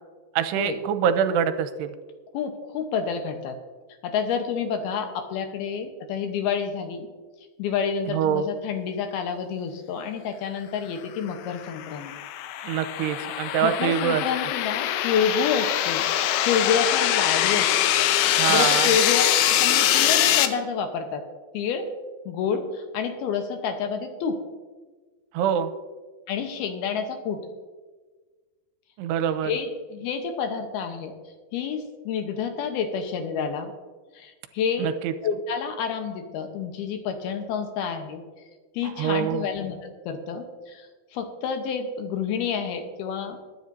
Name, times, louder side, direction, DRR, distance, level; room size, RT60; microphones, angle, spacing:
voice 1, 0.4-2.0 8.1-8.5 12.6-14.2 18.3-18.9 25.3-25.7 29.0-29.5 34.8-35.1 38.8-39.5, right 9 dB, 85° right, 10 dB, 2.7 m, -25 dB
voice 2, 2.3-3.6 4.0-7.1 7.6-12.1 13.3-16.1 16.5-17.9 18.3-21.2 21.5-21.9 22.3-24.4 26.3-27.4 29.4-31.1 31.5-33.7 34.1-34.9 35.2-38.2 38.7-43.4, left 6 dB, 75° left, 6 dB, 2.8 m, -29 dB
sound 1, 11.5-20.5, left 12 dB, 90° left, 2.9 m, -23 dB
21.5 x 10.0 x 2.7 m, 1.4 s
omnidirectional pair, 4.8 m